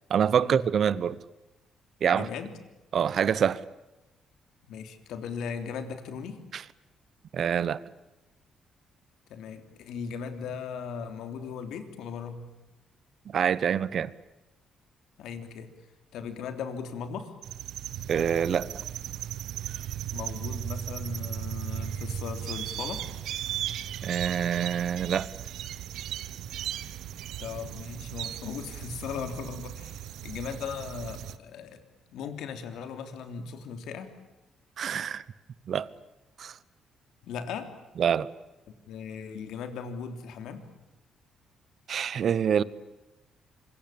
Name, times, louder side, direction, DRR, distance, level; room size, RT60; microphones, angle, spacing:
voice 1, 0.1-1.2 2.0-2.3 2.9-3.6 6.5-6.6 7.3-7.8 13.3-14.1 18.1-18.7 24.0-25.3 34.8-35.2 35.7-35.9 36.4-36.6 38.0-38.3 41.9-42.6, right 8 dB, 50° right, 1.0 m, -26 dB
voice 2, 2.1-2.5 4.7-6.4 9.3-12.4 15.2-15.7 16.1-17.4 20.1-23.0 27.4-31.8 32.1-34.1 37.2-37.7 38.9-40.6, left 6 dB, 85° left, 3.4 m, -38 dB
sound 1, 17.4-31.4, right 10 dB, 80° right, 1.1 m, -36 dB
27.0 x 24.0 x 8.8 m
cardioid pair, 120°, 0 cm